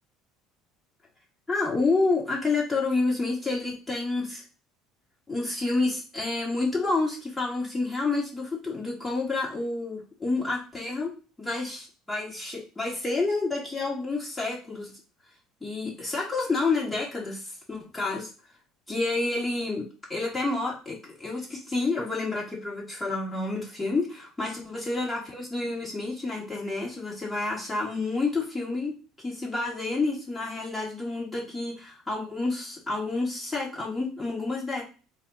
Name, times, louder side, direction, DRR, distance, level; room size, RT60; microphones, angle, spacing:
voice 1, 1.5-4.4 5.3-11.1 11.4-14.9 15.6-18.3 18.9-34.8, left 3 dB, 15° left, -4 dB, 1.7 m, -29 dB
4.0 x 2.2 x 3.9 m, 0.35 s
hypercardioid pair, 75°, 0 cm